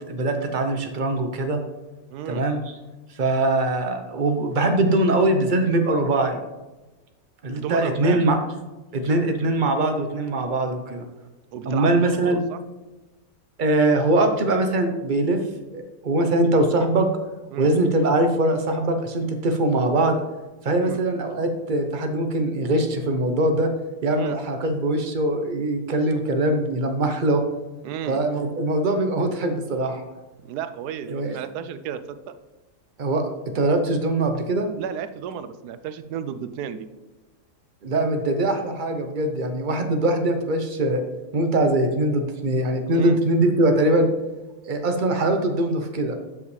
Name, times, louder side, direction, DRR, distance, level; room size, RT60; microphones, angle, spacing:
voice 1, 0.1-1.6 2.3-2.6 3.2-6.4 7.4-8.4 8.9-11.0 11.7-12.4 13.6-15.4 15.7-17.1 17.6-20.2 20.6-23.7 24.0-27.4 28.1-30.0 31.1-31.4 33.0-33.2 33.5-34.7 37.8-41.0 41.3-44.1 44.6-46.2, right 2 dB, 40° right, 6 dB, 0.7 m, -22 dB
voice 2, 2.1-2.4 7.5-8.3 11.5-12.6 17.5-17.7 20.8-21.0 24.1-24.4 27.8-28.2 30.4-32.3 34.8-36.9 42.9-43.2, right 8 dB, 85° right, 12 dB, 1.2 m, -33 dB
12.0 x 5.5 x 3.2 m, 1.1 s
omnidirectional pair, 1.7 m